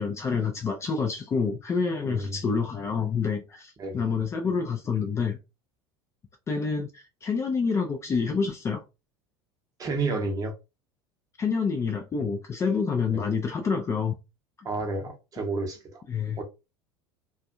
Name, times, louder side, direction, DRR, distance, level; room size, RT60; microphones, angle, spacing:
voice 1, 0.0-5.4 6.5-8.8 11.4-14.1 16.1-16.4, left 5 dB, 20° left, 0.4 m, -27 dB
voice 2, 2.1-2.4 3.8-4.0 9.8-10.5 14.6-16.0 16.4-16.5, right 3 dB, 25° right, 0.8 m, -30 dB
2.5 x 2.2 x 2.4 m
figure-of-eight pair, 75°, 14 cm